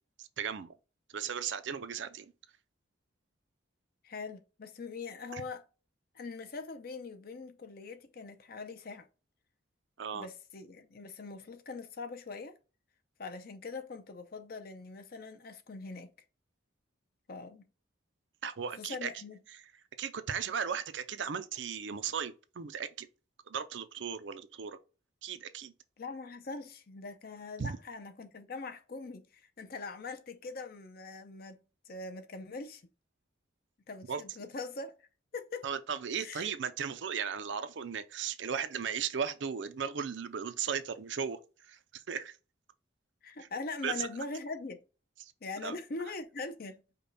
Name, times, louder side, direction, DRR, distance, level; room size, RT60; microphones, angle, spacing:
voice 1, 0.2-0.7 1.1-2.3 5.3-5.4 10.0-10.3 18.4-19.1 19.5-19.6 20.0-23.1 23.5-24.8 25.2-25.7 27.6-27.8 34.1-34.2 35.6-42.4 43.8-44.1 45.2-45.3 45.6-45.8, right 7 dB, 70° right, 0.5 m, -36 dB
voice 2, 4.0-5.6 6.1-9.1 10.1-12.5 13.2-16.1 17.3-17.7 18.8-19.4 26.0-32.8 33.9-34.9 35.3-35.7 36.2-36.5 43.2-44.8 45.4-46.8, left 3 dB, 50° left, 0.6 m, -42 dB
5.1 x 2.3 x 4.0 m
head